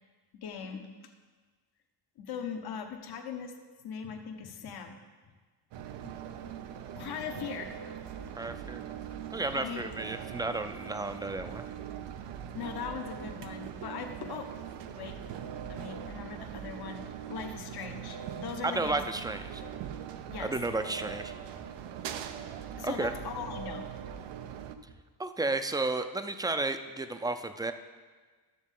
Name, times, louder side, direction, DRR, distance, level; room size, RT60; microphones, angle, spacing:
voice 1, 0.4-0.9 2.2-3.6 3.8-5.0 6.0-6.2 6.9-7.7 9.5-9.9 12.5-14.6 15.0-15.2 15.7-17.0 17.3-19.0 19.6-19.8 20.3-20.5 22.8-23.9, left 7 dB, 60° left, 5 dB, 1.0 m, -40 dB
sound 1, 5.7-24.8, right 9 dB, 90° right, 0.7 m, -42 dB
sound 2, 7.9-24.9, right 5 dB, 70° right, 1.4 m, -51 dB
voice 2, 8.4-8.8 9.3-11.7 18.6-19.6 20.4-21.3 22.8-23.1 25.2-27.7, right 2 dB, 10° right, 8 dB, 0.4 m, -32 dB
12.0 x 7.2 x 3.8 m, 1.4 s
cardioid pair, 115°, 42 cm